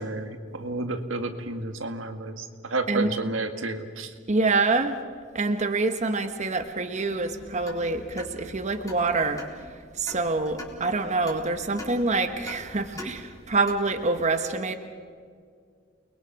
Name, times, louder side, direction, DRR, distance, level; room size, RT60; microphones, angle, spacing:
voice 1, 0.0-4.1, right 2 dB, 90° right, 6 dB, 1.9 m, -31 dB
voice 2, 4.3-5.0 5.3-9.4 10.0-14.8, right 3 dB, 35° right, 7 dB, 1.1 m, -26 dB
sound 1, 7.1-14.1, left 1 dB, 20° left, 3.9 m, -44 dB
29.5 x 21.0 x 6.0 m, 2.1 s
head